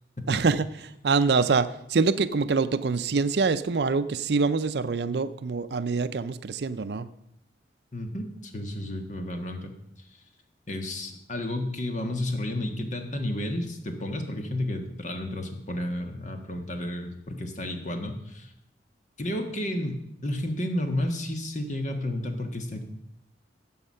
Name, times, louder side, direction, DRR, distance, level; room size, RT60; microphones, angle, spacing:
voice 1, 0.3-7.1, right 4 dB, 60° right, 13 dB, 0.5 m, -25 dB
voice 2, 7.9-9.7 10.7-18.5 19.2-22.8, left 1 dB, 40° left, 5 dB, 1.6 m, -32 dB
14.0 x 7.9 x 5.6 m, 0.79 s
head